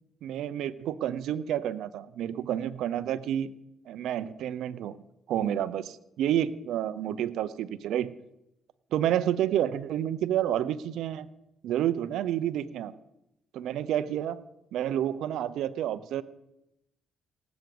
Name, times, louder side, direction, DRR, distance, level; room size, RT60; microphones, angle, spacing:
voice 1, 0.2-3.5 3.9-5.0 5.3-8.2 8.9-11.3 11.6-12.9 13.5-14.4 14.7-16.2, right 11 dB, 80° right, 15 dB, 0.7 m, -29 dB
18.5 x 8.3 x 7.8 m, 0.87 s
cardioid pair, 90°, 0 cm